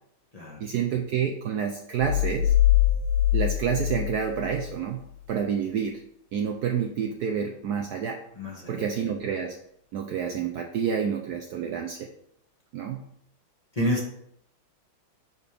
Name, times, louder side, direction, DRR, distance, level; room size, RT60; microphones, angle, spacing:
voice 1, 0.6-2.5 3.3-5.0 5.3-6.0 6.3-8.2 8.7-9.6 9.9-12.1 12.7-13.0, right 7 dB, 70° right, 4 dB, 1.0 m, -28 dB
sound 1, 2.0-4.8, left 13 dB, 65° left, 1.1 m, -23 dB
voice 2, 8.3-8.9 13.7-14.2, equal, 20° left, -3 dB, 1.4 m, -29 dB
10.5 x 4.3 x 3.5 m, 0.74 s
omnidirectional pair, 2.1 m